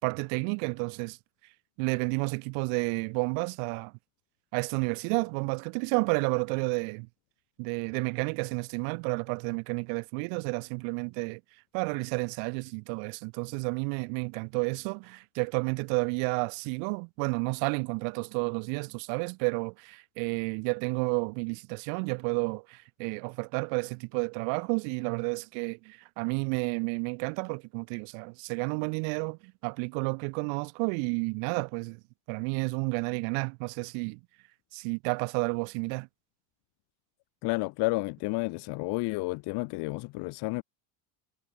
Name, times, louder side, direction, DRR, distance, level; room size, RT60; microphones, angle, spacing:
voice 1, 0.0-1.2 1.8-3.9 4.5-7.1 7.6-11.4 11.7-32.0 32.3-34.2 34.7-36.1, right 40 dB or more, 75° right, 2.2 m, -31 dB
voice 2, 37.4-40.6, left 25 dB, 55° left, 1.5 m, -31 dB
cardioid pair, 170°, 46 cm